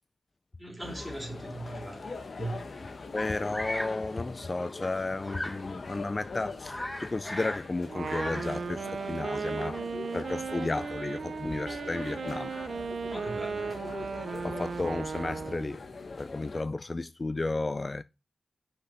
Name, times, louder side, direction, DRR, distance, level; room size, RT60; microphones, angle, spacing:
voice 1, 0.6-2.6 13.1-13.8, right 2 dB, ahead, 2.9 m, -39 dB
sound 1, 0.8-16.6, left 3 dB, 60° left, 1.2 m, -42 dB
voice 2, 3.1-9.8 10.1-12.5 14.4-15.8 16.2-18.0, left 2 dB, 35° left, 0.4 m, -33 dB
Bird vocalization bird call bird song, 3.5-4.0 5.3-5.7 6.1-6.2 6.5-7.7 7.9-8.6, left 1 dB, 15° left, 1.2 m, -37 dB
Wind instrument woodwind instrument, 7.8-15.8, right 5 dB, 75° right, 0.6 m, -36 dB
6.0 x 5.2 x 5.6 m
wide cardioid pair, 80°, 0 cm